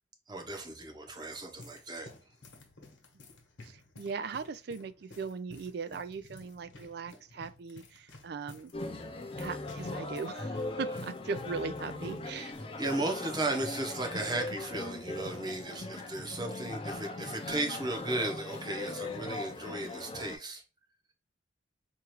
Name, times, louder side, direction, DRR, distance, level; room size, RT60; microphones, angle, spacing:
voice 1, 0.3-2.1 12.8-20.6, right 2 dB, 20° right, 0.7 m, -35 dB
sound 1, 1.0-13.9 14.2-14.3 15.1-15.4, left 2 dB, 75° left, 1.0 m, -53 dB
voice 2, 3.6-8.7 9.4-12.5, right 5 dB, 55° right, 0.3 m, -39 dB
sound 2, 8.7-20.4, left 2 dB, 30° left, 0.4 m, -39 dB
4.5 x 2.4 x 3.0 m
head